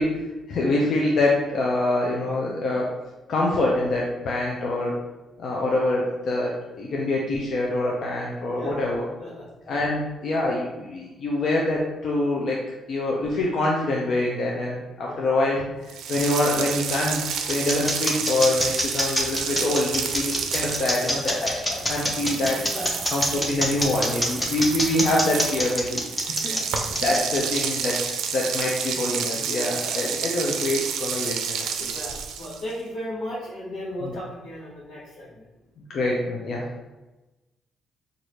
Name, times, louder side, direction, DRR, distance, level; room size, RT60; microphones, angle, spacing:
voice 1, 0.0-2.9 3.3-4.9 5.4-9.0 9.7-12.6 12.9-17.2 17.5-22.6 23.1-26.0 26.4-26.5 27.0-31.9 35.9-36.7, left 2 dB, 60° left, -3 dB, 0.6 m, -25 dB
voice 2, 9.2-9.5 15.0-15.2 22.7-23.1 26.4-26.6 27.1-27.5 31.9-35.5, equal, 85° left, -10 dB, 1.2 m, -36 dB
sound 1, 15.9-32.7, right 7 dB, 85° right, 0.4 m, -30 dB
sound 2, 16.7-28.6, left 1 dB, 15° left, 0.8 m, -26 dB
4.2 x 2.6 x 3.1 m, 1.1 s
cardioid pair, 90°, 0 cm